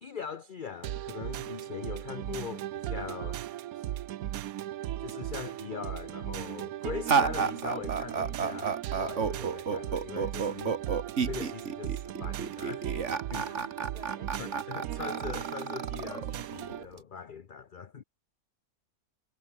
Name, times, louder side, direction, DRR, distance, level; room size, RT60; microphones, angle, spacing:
voice 1, 0.0-3.4 3.7-3.9 5.0-10.8 11.3-12.9 13.3-13.4 14.4-18.0, left 6 dB, 40° left, 0.8 m, -41 dB
sound 1, 0.8-16.8, right 13 dB, 75° right, 1.1 m, -37 dB
sound 2, 7.1-17.0, right 5 dB, 50° right, 1.9 m, -31 dB
voice 2, 13.4-14.3, right 1 dB, 25° right, 6.7 m, -51 dB
omnidirectional pair, 1.6 m